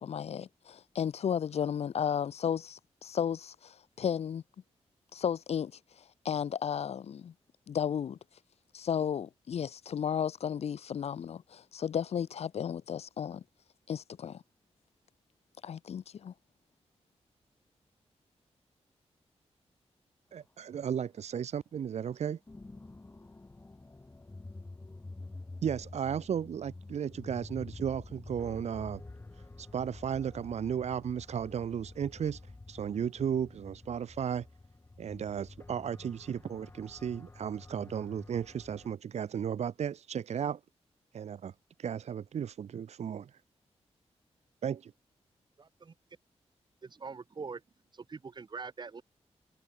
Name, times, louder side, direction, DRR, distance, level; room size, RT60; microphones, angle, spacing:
voice 1, 0.0-4.4 5.1-5.7 6.2-7.3 7.7-8.2 8.7-13.4 13.9-14.4 15.6-16.3, left 8 dB, 65° left, 0.7 m, -33 dB
voice 2, 20.3-22.4 25.6-29.0 29.4-34.5 35.0-40.6 41.1-41.5 41.8-43.4 44.6-44.9, right 8 dB, 75° right, 1.0 m, -35 dB
sound 1, 22.5-38.9, left 2 dB, 20° left, 6.0 m, -49 dB
voice 3, 45.6-45.9 46.8-47.6 47.9-49.0, right 5 dB, 40° right, 2.4 m, -43 dB
wide cardioid pair, 135°, 11 cm